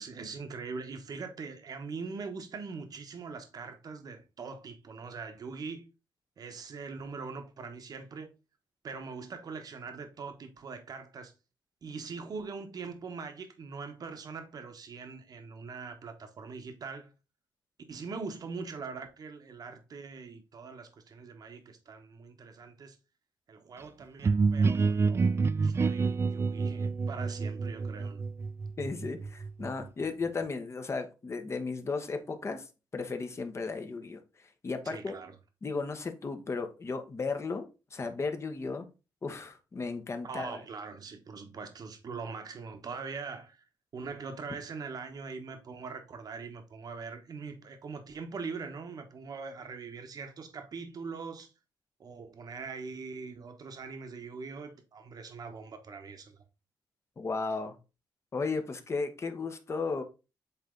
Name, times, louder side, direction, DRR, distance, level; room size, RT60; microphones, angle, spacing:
voice 1, 0.0-5.9 6.4-8.3 8.8-11.3 11.8-17.1 17.9-23.0 23.5-28.2 34.8-35.4 40.2-43.6 43.9-51.5 52.0-56.4, right 4 dB, 50° right, 1.2 m, -42 dB
sound 1, 24.2-29.9, right 4 dB, 30° right, 0.4 m, -28 dB
voice 2, 28.8-32.6 32.9-34.2 34.6-35.1 35.6-37.6 37.9-38.9 39.2-40.6 57.2-57.8 58.3-60.0, left 4 dB, 35° left, 1.0 m, -35 dB
8.0 x 3.3 x 3.8 m
wide cardioid pair, 130°, 8 cm